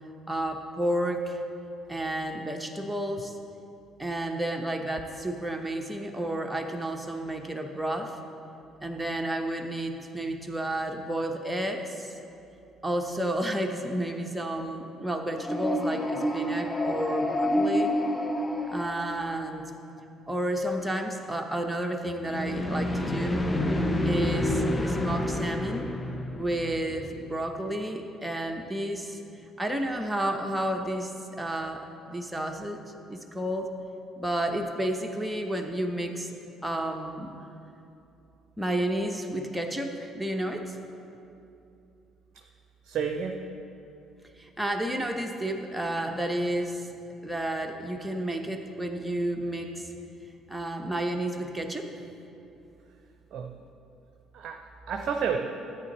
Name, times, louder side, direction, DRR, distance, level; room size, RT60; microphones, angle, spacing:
voice 1, 0.3-1.4 1.9-3.4 4.0-8.2 8.8-12.2 12.8-17.9 18.7-19.7 20.3-23.4 24.0-25.9 26.3-29.2 29.6-32.8 33.1-33.7 34.2-36.3 36.6-37.3 38.6-40.8 44.4-46.9 47.2-49.9 50.5-51.9, right 1 dB, 5° right, 3 dB, 0.9 m, -31 dB
sound 1, 15.3-19.6 22.2-27.2, left 1 dB, 15° left, 0.7 m, -28 dB
voice 2, 42.8-43.5 53.3-53.7 54.3-55.4, right 6 dB, 50° right, 4 dB, 0.6 m, -31 dB
13.5 x 8.6 x 3.1 m, 2.8 s
figure-of-eight pair, 50°, 0 cm